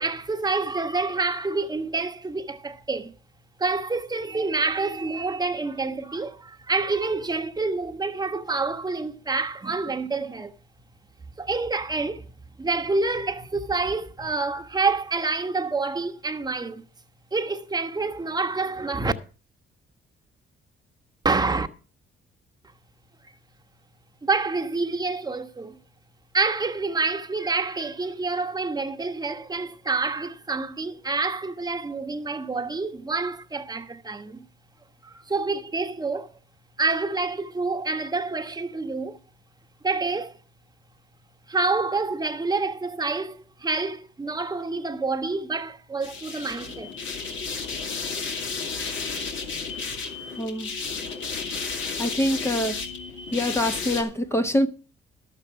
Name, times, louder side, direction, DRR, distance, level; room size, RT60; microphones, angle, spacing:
voice 1, 0.0-3.1 3.6-10.5 11.4-12.3 12.6-16.8 17.3-19.1 21.2-21.7 24.2-25.8 26.3-34.4 35.0-36.3 36.8-39.2 39.8-40.4 41.5-46.9, right 3 dB, 20° right, 1.1 m, -27 dB
sound 1, 46.0-54.0, left 5 dB, 75° left, 2.6 m, -32 dB
voice 2, 50.3-50.7 52.0-52.8 53.3-54.7, left 1 dB, 15° left, 0.8 m, -24 dB
12.0 x 7.4 x 5.8 m
cardioid pair, 90°, 20 cm